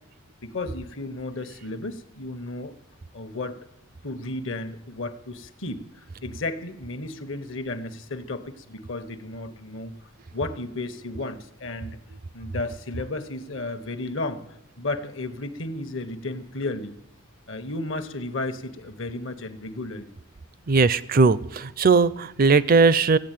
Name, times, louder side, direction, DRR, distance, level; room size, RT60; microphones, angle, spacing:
voice 1, 0.4-2.7 3.1-3.6 4.0-9.9 10.3-12.0 12.3-14.4 14.8-16.9 17.5-20.1, left 2 dB, 60° left, 10 dB, 1.1 m, -33 dB
voice 2, 20.7-23.2, right 4 dB, 40° right, 18 dB, 0.5 m, -19 dB
15.0 x 9.1 x 9.1 m, 0.81 s
head